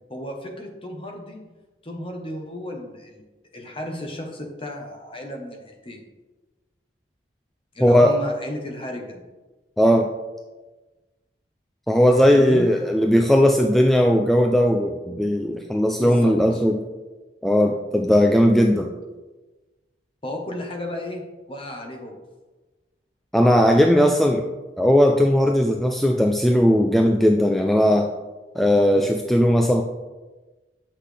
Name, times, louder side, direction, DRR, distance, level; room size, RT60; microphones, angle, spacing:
voice 1, 0.1-1.4 1.8-3.2 3.5-6.0 7.7-9.2 12.2-12.7 16.0-16.6 18.5-18.6 20.2-21.2 21.5-22.1, left 1 dB, 30° left, 2 dB, 1.1 m, -33 dB
voice 2, 7.8-8.2 9.8-10.1 11.9-16.8 17.4-18.9 23.3-24.5 24.8-28.1 28.6-29.8, equal, ahead, 2 dB, 0.3 m, -18 dB
8.2 x 5.7 x 3.3 m, 1.2 s
head